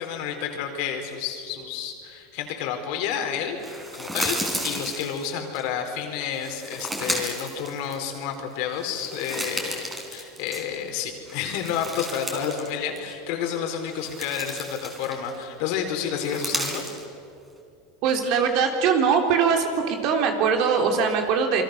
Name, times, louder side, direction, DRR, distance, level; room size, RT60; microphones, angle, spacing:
voice 1, 0.0-9.8 10.1-16.8, left 8 dB, 65° left, 4 dB, 4.2 m, -30 dB
sound 1, 3.6-5.6 6.3-8.3 8.7-10.9 11.3-12.7 13.0-13.1 13.7-15.4 16.1-17.0, right 1 dB, 10° right, 4.4 m, -33 dB
voice 2, 18.0-21.6, right 6 dB, 60° right, 4 dB, 3.8 m, -22 dB
28.0 x 23.0 x 6.6 m, 2.5 s
supercardioid pair, 125°, 0 cm